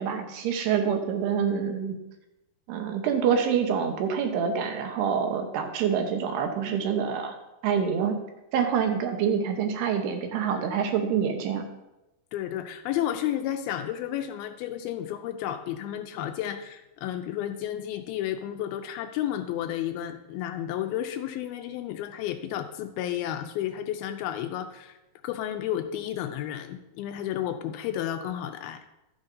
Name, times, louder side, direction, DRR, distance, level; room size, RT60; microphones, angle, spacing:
voice 1, 0.0-2.0 2.7-7.4 7.6-8.2 8.5-11.7, right 7 dB, 90° right, 5 dB, 3.1 m, -26 dB
voice 2, 12.3-25.0 25.2-28.8, left 11 dB, 80° left, 7 dB, 2.3 m, -32 dB
12.0 x 9.4 x 2.7 m, 0.94 s
omnidirectional pair, 4.6 m